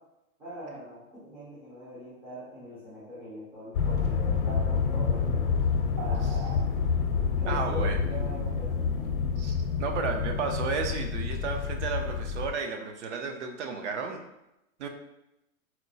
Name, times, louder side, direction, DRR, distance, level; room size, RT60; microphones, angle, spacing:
voice 1, 0.4-5.6 5.9-6.7 7.4-9.1, equal, 5° right, -10 dB, 0.4 m, -42 dB
sound 1, 3.7-12.5, left 5 dB, 80° left, 0.6 m, -28 dB
voice 2, 7.5-8.0 9.4-14.2 14.8-14.9, right 5 dB, 55° right, 5 dB, 0.5 m, -33 dB
4.2 x 2.0 x 2.6 m, 0.87 s
hypercardioid pair, 135°, 42 cm